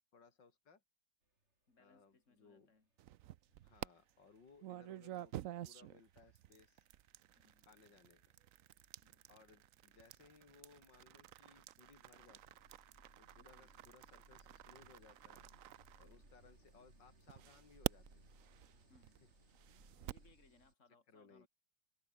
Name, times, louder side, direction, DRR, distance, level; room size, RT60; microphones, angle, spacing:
voice 1, 0.1-0.8 1.8-2.7 3.6-6.9 7.7-8.3 9.3-12.7 13.2-15.5 16.0-18.3 21.1-21.5, left 5 dB, 65° left, 3.9 m, -64 dB
voice 2, 1.7-2.9 4.7-4.9 7.4-7.7 9.0-9.3 13.4-13.9 16.0-16.4 18.9-19.2 20.0-21.5, left 3 dB, 35° left, 4.1 m, -70 dB
sound 1, 2.9-3.1 3.5-20.7, right 1 dB, 35° right, 6.9 m, -68 dB
sound 2, 3.0-3.9 4.6-16.6 17.3-20.3, right 13 dB, 90° right, 0.7 m, -49 dB
omnidirectional pair, 2.1 m